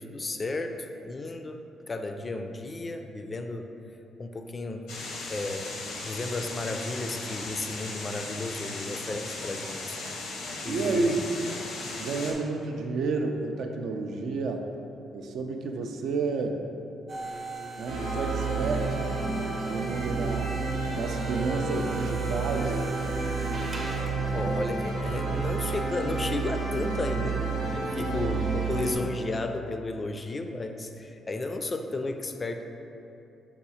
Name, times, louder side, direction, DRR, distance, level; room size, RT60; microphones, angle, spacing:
voice 1, 0.0-1.6 1.9-3.7 4.2-4.8 5.3-5.8 6.1-10.0 10.6-11.2 24.3-32.6, left 2 dB, 30° left, 5 dB, 0.3 m, -33 dB
sound 1, 4.9-12.3, left 2 dB, 85° left, 0.6 m, -37 dB
voice 2, 10.7-11.2 12.0-14.6 15.1-16.6 17.8-19.0 19.6-20.6 20.9-22.8, right 3 dB, 75° right, 4 dB, 0.4 m, -30 dB
sound 2, 17.1-24.3, right 2 dB, 35° right, 0.7 m, -40 dB
sound 3, 17.9-28.9, right 4 dB, 90° right, 0.9 m, -30 dB
5.5 x 2.4 x 4.1 m, 2.8 s
cardioid pair, 90°, 0 cm